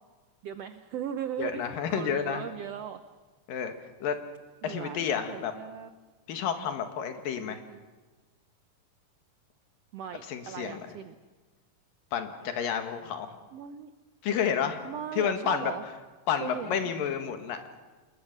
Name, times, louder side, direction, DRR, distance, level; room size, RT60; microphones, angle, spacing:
voice 1, 0.4-3.0 4.6-5.9 7.4-7.9 9.9-11.1 13.5-13.9 14.8-15.8 16.4-16.9, right 9 dB, 85° right, 9 dB, 1.4 m, -38 dB
voice 2, 1.4-2.4 3.5-3.7 4.0-4.2 4.6-5.5 6.3-7.6 10.3-10.9 12.1-13.3 14.2-14.8 15.1-15.7 16.3-17.6, left 7 dB, 80° left, 6 dB, 3.4 m, -30 dB
27.0 x 21.0 x 6.7 m, 1.3 s
omnidirectional pair, 4.0 m